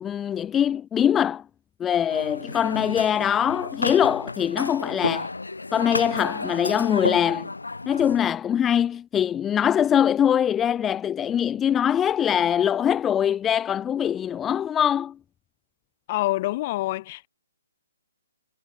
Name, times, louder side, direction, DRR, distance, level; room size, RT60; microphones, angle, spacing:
voice 1, 0.0-1.4 1.8-5.3 5.7-7.5 7.9-15.1, left 9 dB, 15° left, 0.4 m, -23 dB
sound 1, 2.1-8.2, left 3 dB, 85° left, 2.4 m, -31 dB
voice 2, 16.1-17.3, left 17 dB, 35° left, 1.1 m, -26 dB
figure-of-eight pair, 135°, 0 cm